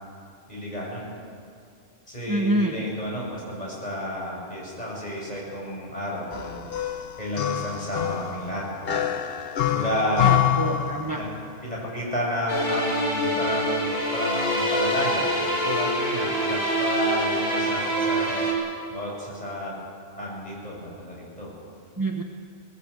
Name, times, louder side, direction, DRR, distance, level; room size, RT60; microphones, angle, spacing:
voice 1, 0.5-1.1 2.1-6.9 7.2-9.0 9.3-10.5 11.1-11.2 11.6-18.4 18.9-19.7 20.2-21.5, equal, 30° left, -4 dB, 7.4 m, -31 dB
voice 2, 2.3-2.8 10.2-11.2 22.0-22.2, right 1 dB, 15° right, 2 dB, 1.2 m, -26 dB
sound 1, 6.3-11.5, left 11 dB, 50° left, 1.1 m, -26 dB
sound 2, 12.5-18.5, right 1 dB, 90° left, 5.6 m, -25 dB
19.5 x 19.0 x 8.5 m, 2.3 s
omnidirectional pair, 1.3 m